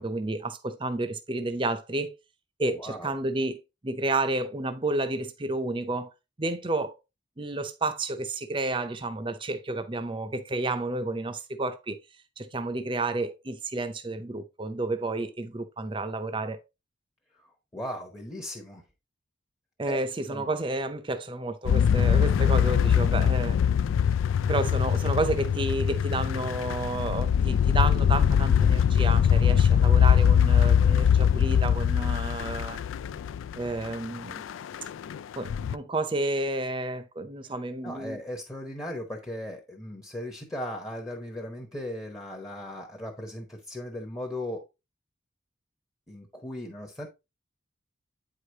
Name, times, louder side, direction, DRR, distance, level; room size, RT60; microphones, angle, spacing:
voice 1, 0.0-2.2 2.6-6.1 6.4-7.0 7.4-12.0 12.4-16.6 19.8-23.6 24.5-32.8 33.6-34.4 35.4-38.2, right 2 dB, 25° right, 0.6 m, -31 dB
voice 2, 2.7-3.1 17.4-18.8 19.9-20.0 20.3-20.5 37.8-44.6 46.1-47.1, left 1 dB, 15° left, 0.9 m, -37 dB
sound 1, 21.6-33.9 34.3-35.2 35.4-35.7, left 8 dB, 75° left, 0.3 m, -22 dB
8.6 x 4.9 x 2.8 m
head